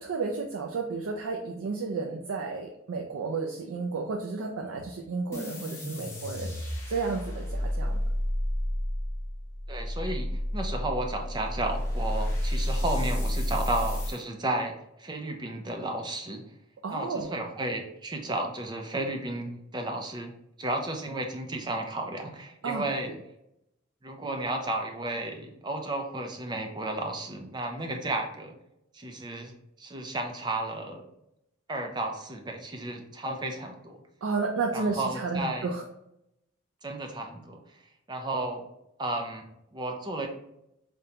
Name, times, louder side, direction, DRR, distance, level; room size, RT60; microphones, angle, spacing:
voice 1, 0.0-6.5 6.9-8.0 16.8-17.3 22.6-22.8 34.2-35.8, right 4 dB, 80° right, 2 dB, 0.4 m, -32 dB
sound 1, 5.3-14.2, left 1 dB, 15° left, 0.7 m, -31 dB
voice 2, 9.7-16.4 16.9-20.3 20.6-23.1 24.0-28.5 28.9-31.1 31.7-34.0 34.7-35.7 36.8-37.6 38.1-38.7 39.0-40.3, right 2 dB, 20° right, 4 dB, 0.4 m, -33 dB
5.0 x 2.2 x 2.9 m, 0.81 s
head